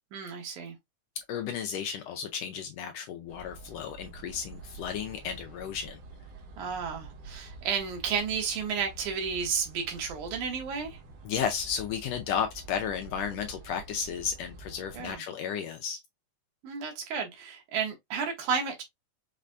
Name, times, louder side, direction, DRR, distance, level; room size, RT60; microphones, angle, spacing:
voice 1, 0.1-0.8 6.6-11.0 14.9-15.2 16.6-18.8, right 6 dB, 85° right, 2.7 m, -32 dB
voice 2, 1.3-6.0 11.2-16.0, left 7 dB, 80° left, 1.6 m, -33 dB
sound 1, 3.3-15.2, right 3 dB, 65° right, 1.8 m, -48 dB
5.8 x 2.2 x 2.5 m
omnidirectional pair, 3.4 m